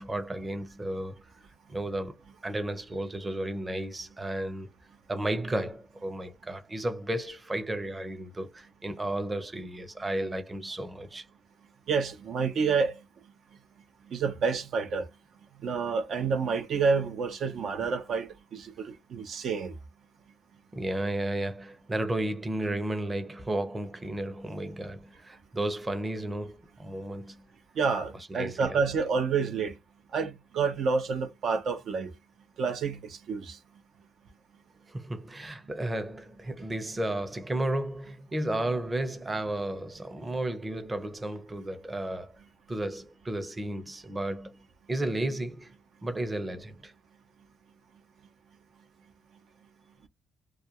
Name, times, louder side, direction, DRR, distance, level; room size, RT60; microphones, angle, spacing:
voice 1, 0.0-1.3 1.7-2.2 2.4-4.7 5.1-11.3 20.7-27.5 28.1-28.8 34.9-42.4 42.7-44.6 44.9-45.7 46.0-46.9, right 1 dB, 20° right, 0.7 m, -33 dB
voice 2, 11.9-13.0 14.1-15.1 15.6-19.7 27.8-29.7 30.1-32.1 32.6-33.6, right 5 dB, 65° right, 0.6 m, -29 dB
2.4 x 2.3 x 2.8 m
cardioid pair, 90°, 0 cm